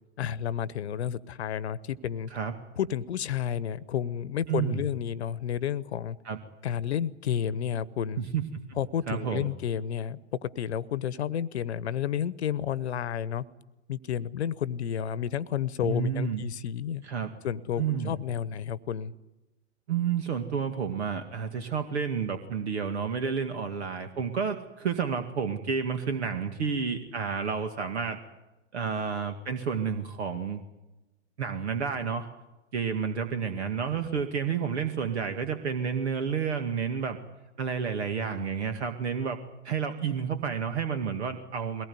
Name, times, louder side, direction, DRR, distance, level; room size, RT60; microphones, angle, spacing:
voice 1, 0.2-2.3 2.8-6.2 6.6-8.2 8.8-13.4 13.9-17.0 17.4-19.1, left 9 dB, 65° left, 18 dB, 1.1 m, -31 dB
voice 2, 4.5-4.8 6.3-6.4 8.3-8.4 9.1-9.5 15.8-16.4 17.0-17.3 17.8-18.1 19.9-28.2 28.7-30.6 31.4-32.3 32.7-37.2 37.6-39.4 39.6-41.9, right 6 dB, 65° right, 7 dB, 2.2 m, -30 dB
22.0 x 19.0 x 9.5 m, 1.0 s
figure-of-eight pair, 110°, 36 cm